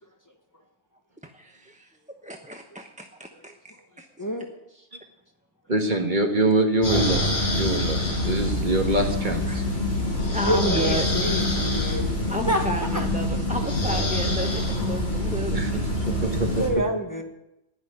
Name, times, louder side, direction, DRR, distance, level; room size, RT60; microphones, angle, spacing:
voice 1, 1.3-1.9 2.2-4.1 8.9-9.0 9.5-9.6 10.3-11.1 12.3-15.8, equal, 5° right, 3 dB, 0.9 m, -32 dB
voice 2, 5.7-9.6 15.5-16.6, right 1 dB, 45° right, 4 dB, 1.7 m, -25 dB
sound 1, 6.8-16.7, left 1 dB, 45° left, 5.1 m, -25 dB
voice 3, 10.4-12.1 12.5-12.7 12.9-13.0 15.9-16.0 16.5-17.2, equal, 15° left, 3 dB, 1.5 m, -27 dB
19.0 x 6.3 x 9.7 m, 0.89 s
omnidirectional pair, 1.1 m